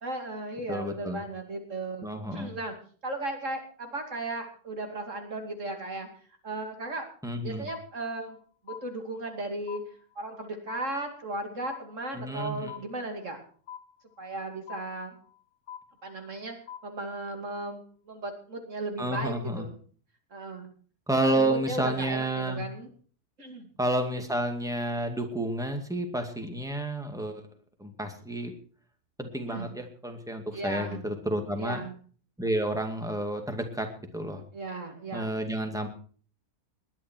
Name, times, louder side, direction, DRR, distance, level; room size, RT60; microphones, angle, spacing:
voice 1, 0.0-2.7 3.0-6.1 6.4-7.1 7.4-8.4 8.6-9.8 10.2-13.4 14.2-15.2 16.0-16.6 16.8-17.8 18.1-19.8 20.3-20.7 21.2-22.9 23.4-23.7 29.5-29.7 30.5-31.0 31.6-31.9 34.5-35.3, right 2 dB, 55° right, 4 dB, 2.9 m, -36 dB
voice 2, 0.7-1.2 2.0-2.5 7.2-7.7 12.1-12.7 19.0-19.7 21.1-22.6 23.8-27.4 27.8-28.5 29.2-31.8 32.4-33.9 34.1-34.4 35.1-35.9, right 1 dB, ahead, 5 dB, 2.2 m, -30 dB
sound 1, 7.7-8.4 8.7-9.4 9.7-10.4 10.7-11.4 11.7-12.4 12.7-13.4 13.7-14.4 14.7-15.4 15.7-16.4 16.7-17.4, left 9 dB, 75° left, 1.3 m, -45 dB
20.5 x 10.5 x 4.6 m, 0.43 s
omnidirectional pair, 1.6 m